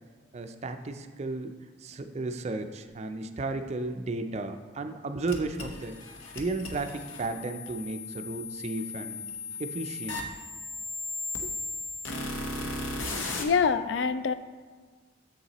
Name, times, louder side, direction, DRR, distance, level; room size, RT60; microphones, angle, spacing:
voice 1, 0.3-1.5 1.8-6.0 6.3-9.2 9.6-10.3 11.4-11.5, right 3 dB, 35° right, 7 dB, 0.4 m, -34 dB
sound 1, 5.3-13.4, left 3 dB, 90° left, 0.9 m, -36 dB
voice 2, 13.1-14.3, left 6 dB, 65° left, 12 dB, 0.3 m, -26 dB
7.3 x 6.7 x 3.0 m, 1.5 s
head